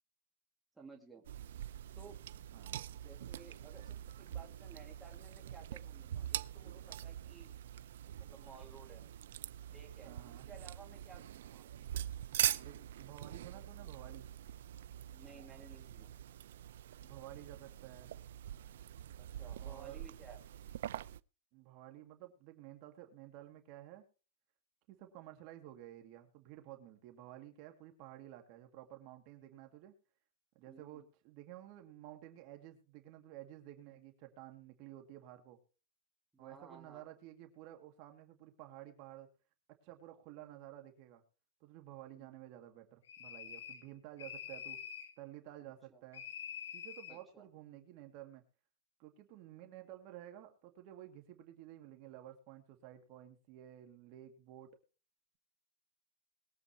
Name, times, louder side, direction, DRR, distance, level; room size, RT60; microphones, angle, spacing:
voice 1, 0.7-1.2 2.0-2.2 3.0-7.6 8.2-9.0 9.7-10.1 10.5-11.8 15.1-16.1 19.2-20.4 30.7-31.1 36.3-37.2 42.1-42.3 45.6-46.0 47.1-47.5, right 4 dB, 10° right, 0 dB, 2.2 m, -57 dB
sound 1, 1.3-21.2, right 11 dB, 75° right, 0.5 m, -43 dB
voice 2, 10.0-10.5 12.6-14.3 17.0-18.1 19.6-20.0 21.5-24.0 24.9-29.9 30.6-35.6 36.4-39.3 39.8-41.2 41.6-44.8 45.2-46.2 46.7-48.4 49.0-54.7, right 13 dB, 40° right, 5 dB, 2.2 m, -53 dB
sound 2, 43.1-43.9 44.2-45.1 46.1-47.2, left 8 dB, 90° left, 2.8 m, -46 dB
21.5 x 8.0 x 3.2 m, 0.36 s
supercardioid pair, 160°, 0 cm